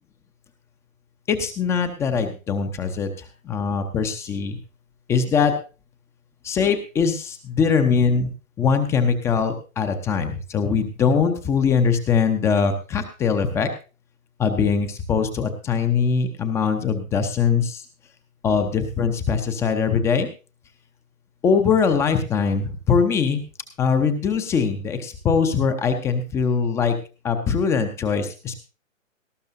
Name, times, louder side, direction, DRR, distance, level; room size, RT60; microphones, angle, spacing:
voice 1, 1.3-4.6 5.1-5.5 6.4-8.3 8.6-13.7 14.4-17.8 18.4-20.3 21.4-23.4 23.8-27.0 27.2-28.6, left 6 dB, 5° left, 8 dB, 0.6 m, -22 dB
18.0 x 14.0 x 2.6 m, 0.33 s
figure-of-eight pair, 125°, 40 cm